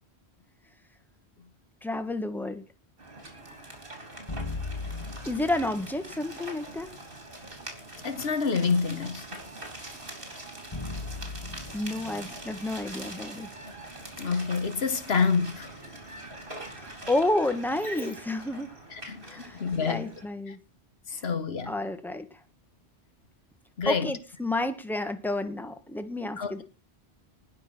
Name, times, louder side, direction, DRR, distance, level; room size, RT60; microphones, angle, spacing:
voice 1, 1.8-2.6 5.3-6.9 11.7-13.5 16.8-18.7 19.2-20.6 21.7-22.2 23.8-26.6, left 2 dB, ahead, 1.5 m, -30 dB
sound 1, 3.0-20.2, right 1 dB, 55° right, 4.4 m, -43 dB
sound 2, 4.3-6.5 10.7-13.9, left 3 dB, 25° left, 1.2 m, -39 dB
voice 2, 8.0-9.4 14.2-15.9 18.9-20.1 20.5-20.6 21.1-21.8 23.8-24.1 26.4-26.6, left 5 dB, 70° left, 1.4 m, -28 dB
19.5 x 6.5 x 6.1 m
omnidirectional pair, 1.1 m